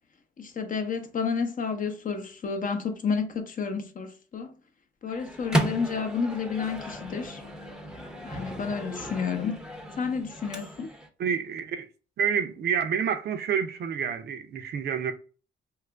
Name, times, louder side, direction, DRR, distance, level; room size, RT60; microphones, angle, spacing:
voice 1, 0.4-4.5 5.0-7.4 8.2-9.6 10.0-10.9, left 5 dB, 40° left, 0.6 m, -30 dB
Microwave oven, 5.1-11.1, right 1 dB, 5° right, 0.6 m, -34 dB
voice 2, 11.2-11.9 12.2-15.1, right 7 dB, 55° right, 0.5 m, -28 dB
2.9 x 2.4 x 3.3 m
cardioid pair, 90°, 20 cm